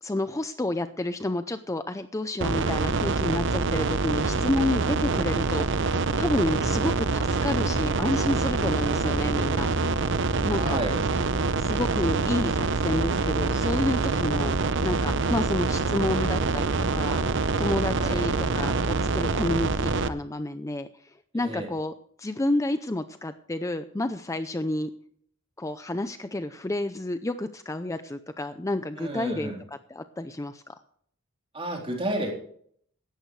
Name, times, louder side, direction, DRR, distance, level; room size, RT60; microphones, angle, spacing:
voice 1, 0.0-9.9 10.4-10.8 11.6-14.6 14.8-17.3 17.6-20.9 21.3-21.9 22.2-24.9 25.6-29.5 29.9-30.7, left 1 dB, 15° left, 10 dB, 0.5 m, -30 dB
sound 1, 2.4-20.1, right 4 dB, 60° right, 0.7 m, -25 dB
voice 2, 10.5-11.0 18.0-18.2 21.3-21.7 29.0-29.6 31.5-32.3, right 1 dB, 25° right, 0 dB, 3.7 m, -31 dB
17.5 x 13.0 x 3.2 m, 0.63 s
head